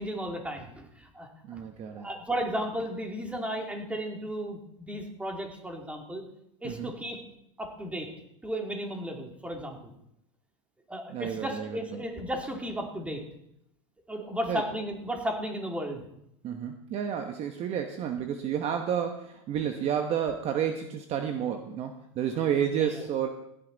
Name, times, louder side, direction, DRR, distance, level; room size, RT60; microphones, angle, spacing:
voice 1, 0.0-1.6 2.0-6.2 6.6-7.2 7.6-8.1 8.4-9.9 10.9-13.2 14.1-16.0 22.8-23.0, equal, 10° right, 2 dB, 2.8 m, -34 dB
voice 2, 1.5-2.1 6.6-6.9 11.1-12.0 14.5-14.6 16.4-23.3, right 8 dB, 40° right, 6 dB, 1.2 m, -30 dB
16.5 x 9.9 x 4.0 m, 0.79 s
hypercardioid pair, 110°, 17 cm